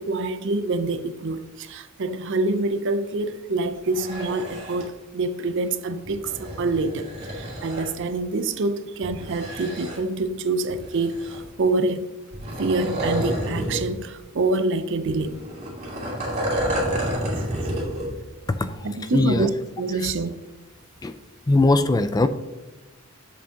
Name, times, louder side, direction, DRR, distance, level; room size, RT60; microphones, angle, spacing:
voice 1, 0.0-12.1 12.6-15.4 16.5-16.7 18.8-19.5 19.8-20.4, right 3 dB, 60° right, 0.5 m, -26 dB
sound 1, 3.7-4.9 6.1-7.9 9.0-10.2 10.7-11.6 12.3-13.9 14.2-14.3 15.0-18.1 18.5-18.6, equal, 35° right, 2.5 m, -30 dB
voice 2, 18.5-18.9 19.1-19.5 20.0-20.1 21.0-21.2 21.5-22.3, left 2 dB, 20° left, 0.3 m, -20 dB
7.4 x 7.1 x 2.8 m
head